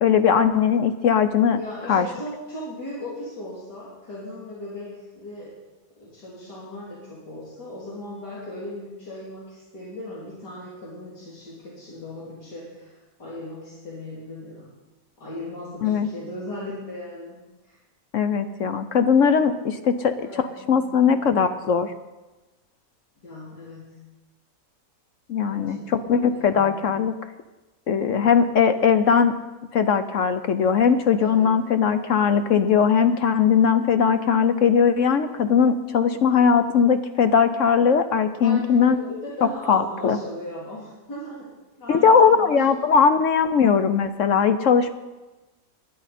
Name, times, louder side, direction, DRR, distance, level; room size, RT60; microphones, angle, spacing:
voice 1, 0.0-1.6 1.9-2.1 15.8-16.1 18.1-20.1 20.7-21.9 25.3-27.1 27.9-29.3 29.7-39.0 39.7-40.2 41.9-44.9, left 6 dB, 60° left, 10 dB, 0.8 m, -19 dB
voice 2, 1.5-5.6 6.0-14.7 15.2-17.4 17.6-17.8 19.3-19.5 19.9-21.3 23.2-24.0 25.5-26.8 31.2-31.5 38.4-42.6, left 1 dB, 75° left, -7 dB, 3.6 m, -38 dB
19.0 x 11.0 x 4.2 m, 1.1 s
omnidirectional pair, 1.8 m